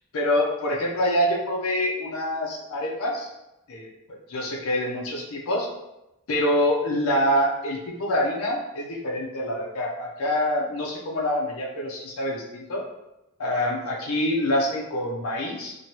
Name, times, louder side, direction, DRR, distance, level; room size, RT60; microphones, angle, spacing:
voice 1, 0.1-3.3 3.7-5.7 6.3-12.8 13.4-15.8, left 1 dB, 80° left, -2 dB, 0.5 m, -26 dB
3.1 x 2.2 x 2.7 m, 0.92 s
head